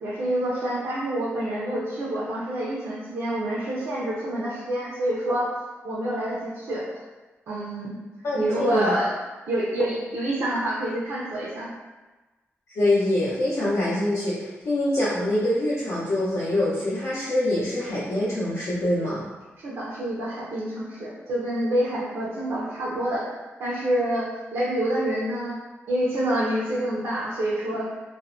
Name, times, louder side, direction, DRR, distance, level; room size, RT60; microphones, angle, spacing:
voice 1, 0.0-5.5 5.8-6.8 7.5-8.0 8.3-9.1 9.5-11.7 19.6-23.3 23.6-24.3 24.5-25.6 25.9-27.9, right 1 dB, 80° right, -8 dB, 0.5 m, -27 dB
voice 2, 8.2-9.0 12.7-19.2, left 1 dB, 70° left, -10 dB, 0.6 m, -24 dB
2.5 x 2.1 x 2.5 m, 1.2 s
wide cardioid pair, 180°, 5 cm